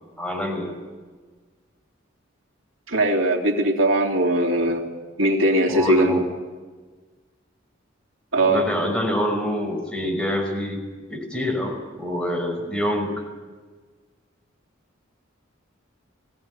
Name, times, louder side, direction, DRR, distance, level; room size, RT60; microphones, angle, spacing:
voice 1, 0.2-0.7 5.7-6.2 8.5-10.8 11.1-13.1, equal, 5° left, 0 dB, 5.7 m, -26 dB
voice 2, 2.9-4.9 5.2-6.2 8.3-8.7, right 1 dB, 90° right, 1 dB, 3.3 m, -20 dB
20.5 x 16.5 x 9.7 m, 1.4 s
head